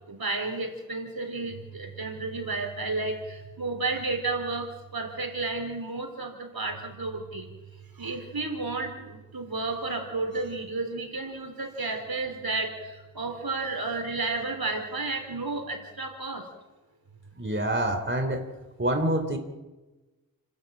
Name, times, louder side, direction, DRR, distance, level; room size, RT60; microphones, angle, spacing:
voice 1, 0.1-3.2 3.6-4.7 4.9-7.5 8.0-12.7 13.2-16.4, right 3 dB, 75° right, 5 dB, 4.0 m, -32 dB
voice 2, 17.4-18.4 18.8-19.4, right 1 dB, 30° right, 6 dB, 3.2 m, -26 dB
29.0 x 13.0 x 8.9 m, 1.1 s
wide cardioid pair, 60°, 36 cm